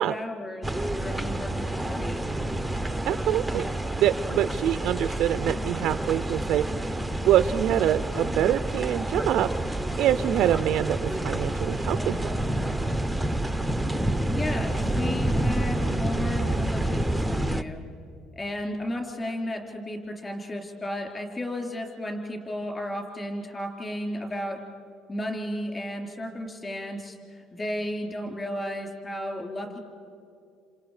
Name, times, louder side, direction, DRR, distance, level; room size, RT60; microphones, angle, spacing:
voice 1, 0.0-2.3 14.3-17.8 18.4-24.6 25.1-29.8, left 1 dB, 20° left, 2 dB, 3.5 m, -34 dB
sound 1, 0.6-17.6, right 1 dB, ahead, 0.6 m, -28 dB
voice 2, 3.1-3.7 4.0-6.6 7.2-12.3, right 12 dB, 60° right, 12 dB, 0.4 m, -25 dB
29.0 x 26.5 x 4.9 m, 2.6 s
cardioid pair, 145°, 0 cm